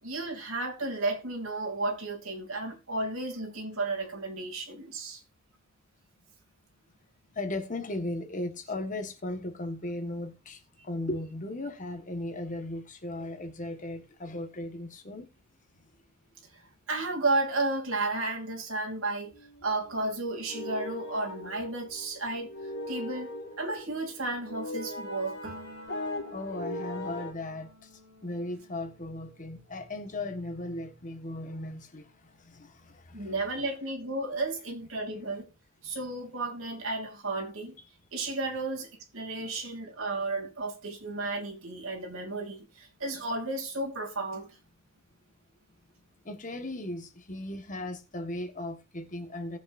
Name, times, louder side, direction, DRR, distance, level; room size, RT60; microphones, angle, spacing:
voice 1, 0.0-5.2 16.5-16.6 16.9-19.3 19.6-22.5 22.9-25.5 33.1-35.5 35.8-37.8 38.1-44.6, right 2 dB, 90° right, 2.8 m, -33 dB
voice 2, 7.3-15.3 26.3-27.9 28.2-32.1 32.4-33.3 39.4-39.6 46.2-49.6, left 1 dB, 40° left, 1.5 m, -37 dB
sound 1, 19.3-27.3, left 1 dB, 55° left, 4.4 m, -40 dB
Piano, 25.4-33.0 33.4-34.9, equal, 60° right, 6.8 m, -54 dB
19.0 x 7.2 x 2.6 m
head